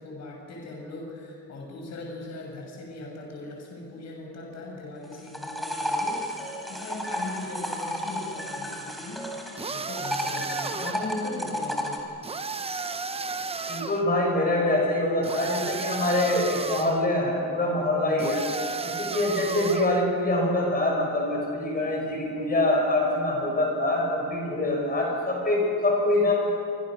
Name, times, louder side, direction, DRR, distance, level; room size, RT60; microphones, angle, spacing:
voice 1, 0.0-6.2 6.7-9.3 9.7-12.0, left 2 dB, 45° left, -1 dB, 7.6 m, -38 dB
sound 1, 5.0-9.6 10.0-12.0, equal, ahead, 3.7 m, -32 dB
sound 2, 9.6-11.1 12.2-14.0 15.2-17.0 18.2-20.0, right 4 dB, 15° right, 0.8 m, -33 dB
voice 2, 13.7-18.4 19.0-26.3, left 1 dB, 25° left, -1 dB, 6.5 m, -25 dB
28.5 x 25.5 x 6.6 m, 2.6 s
cardioid pair, 155°, 38 cm